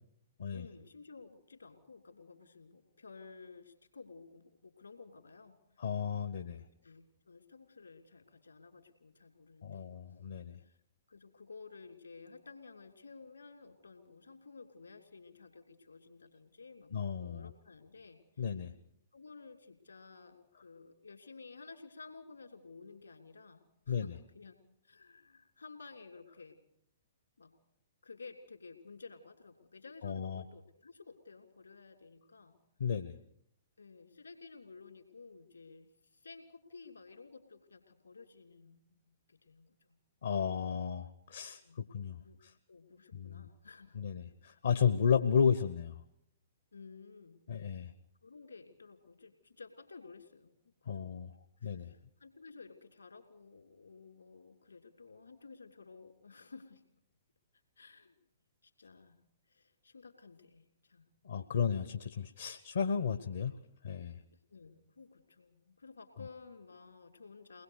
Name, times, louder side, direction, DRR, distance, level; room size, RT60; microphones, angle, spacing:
voice 1, 0.5-5.8 6.7-10.0 10.6-10.8 11.1-18.5 19.1-24.6 24.8-26.6 27.4-27.5 28.0-32.6 33.8-40.0 41.6-41.8 42.2-42.4 42.7-44.0 46.7-47.4 48.2-51.2 51.6-56.8 57.8-58.2 58.6-59.2 59.5-61.1 64.3-67.6, left 4 dB, 80° left, 5 dB, 3.0 m, -54 dB
voice 2, 5.8-6.6 9.6-10.6 16.9-17.5 18.4-18.7 23.9-24.1 30.0-30.4 32.8-33.1 40.2-42.5 43.1-43.5 43.9-46.0 47.5-47.9 50.9-51.3 51.6-51.9 61.2-63.5 63.8-64.2, left 7 dB, 65° left, 9 dB, 0.9 m, -33 dB
23.0 x 20.0 x 6.5 m, 0.72 s
figure-of-eight pair, 115°, 0 cm